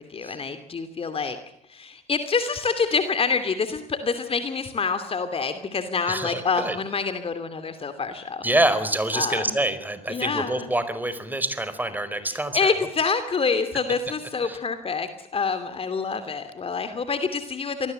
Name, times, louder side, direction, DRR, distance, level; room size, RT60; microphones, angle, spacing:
voice 1, 0.0-1.4 1.7-8.5 9.1-9.6 10.1-10.7 12.2-17.9, left 5 dB, 30° left, 10 dB, 2.8 m, -27 dB
voice 2, 6.1-6.8 8.4-12.7 14.4-14.6, right 1 dB, 10° right, 12 dB, 4.5 m, -26 dB
27.0 x 20.5 x 7.8 m, 0.77 s
figure-of-eight pair, 60°, 20 cm